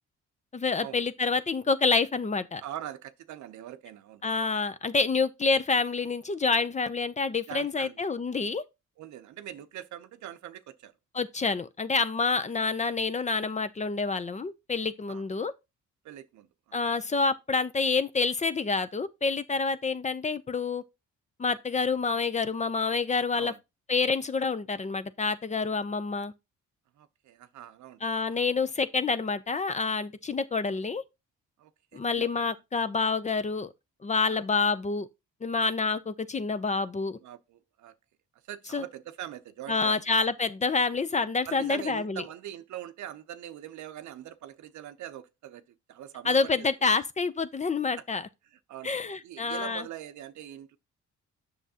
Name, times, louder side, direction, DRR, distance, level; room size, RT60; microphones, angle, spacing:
voice 1, 0.5-2.6 4.2-8.6 11.1-15.5 16.7-20.8 21.4-23.5 23.9-26.3 28.0-31.0 31.9-33.7 34.0-35.1 35.4-37.2 38.7-38.8 39.7-42.2 46.2-48.2 48.8-49.8, left 4 dB, 25° left, 0.5 m, -28 dB
voice 2, 2.6-4.2 4.5-4.6 7.5-8.0 9.0-10.9 15.1-15.2 16.0-16.8 23.4-23.6 27.0-28.5 31.6-32.4 34.3-34.4 37.2-37.9 38.5-40.0 41.5-47.0 48.5-50.8, right 11 dB, 70° right, 0.7 m, -43 dB
7.8 x 6.3 x 2.8 m
cardioid pair, 90°, 30 cm